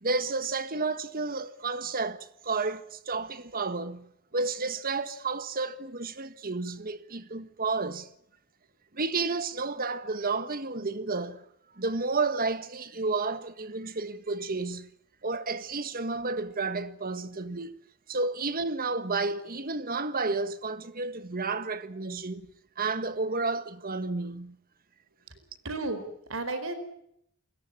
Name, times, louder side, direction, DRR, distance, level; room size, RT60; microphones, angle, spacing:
voice 1, 0.0-4.1 4.3-8.1 8.9-11.4 11.7-14.9 15.2-17.7 18.1-22.5 22.8-24.6, right 3 dB, 45° right, 1.6 m, -31 dB
voice 2, 25.6-26.7, right 2 dB, 70° right, 4.7 m, -33 dB
29.5 x 21.0 x 6.0 m
head